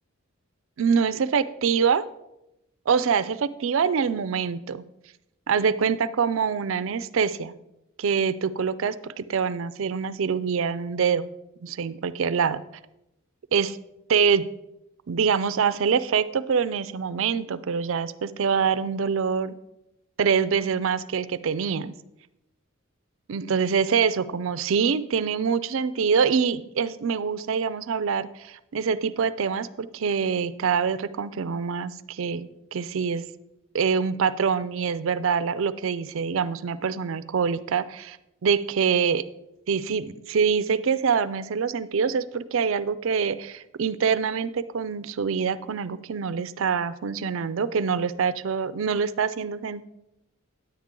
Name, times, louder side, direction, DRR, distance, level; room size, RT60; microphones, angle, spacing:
voice 1, 0.8-2.1 2.9-4.8 5.5-7.5 8.0-11.3 11.6-12.6 13.5-13.8 14.1-14.4 15.1-19.6 20.2-21.9 23.3-33.2 33.7-38.2 38.4-39.2 39.7-49.8, right 6 dB, 65° right, 15 dB, 0.4 m, -25 dB
9.9 x 8.7 x 3.7 m, 0.88 s
head